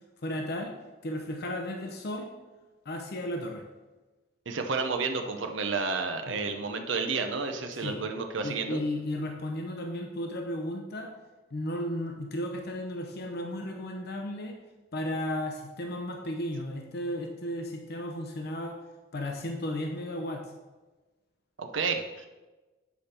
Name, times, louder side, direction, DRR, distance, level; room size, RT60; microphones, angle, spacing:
voice 1, 0.2-0.7 1.0-2.3 2.8-3.6 6.3-6.4 7.8-8.0 8.4-11.1 11.5-14.6 14.9-18.8 19.1-20.5, left 1 dB, 60° left, 3 dB, 0.8 m, -34 dB
voice 2, 4.5-8.8 21.6-22.3, right 4 dB, 75° right, 5 dB, 0.7 m, -31 dB
8.4 x 5.1 x 4.3 m, 1.2 s
head